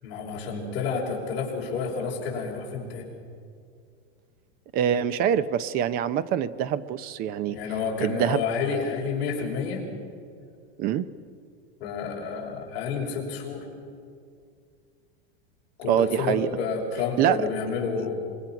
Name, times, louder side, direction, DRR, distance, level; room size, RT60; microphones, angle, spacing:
voice 1, 0.0-3.1 7.5-9.8 11.8-13.6 15.8-18.2, left 5 dB, 40° left, -2 dB, 5.4 m, -30 dB
voice 2, 4.7-7.6 8.0-8.4 10.8-11.1 15.8-16.5 17.2-17.5, right 9 dB, 30° right, 16 dB, 0.7 m, -25 dB
25.5 x 23.0 x 5.9 m, 2.2 s
supercardioid pair, 165°, 29 cm